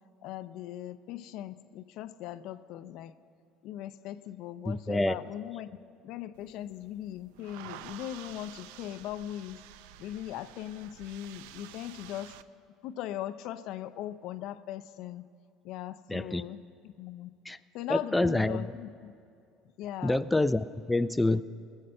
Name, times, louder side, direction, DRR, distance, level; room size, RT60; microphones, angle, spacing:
voice 1, 0.2-3.1 3.6-5.8 6.0-9.6 10.0-12.4 12.8-15.2 15.6-17.3 17.7-19.1 19.8-20.2, left 12 dB, 65° left, 13 dB, 0.5 m, -39 dB
voice 2, 4.7-5.2 16.1-16.4 17.5-17.6 17.9-18.7 20.0-21.4, left 2 dB, 10° left, 12 dB, 0.3 m, -27 dB
sound 1, 6.3-12.4, right 12 dB, 80° right, 0.4 m, -50 dB
19.0 x 6.6 x 7.7 m, 2.5 s
supercardioid pair, 95°, 0 cm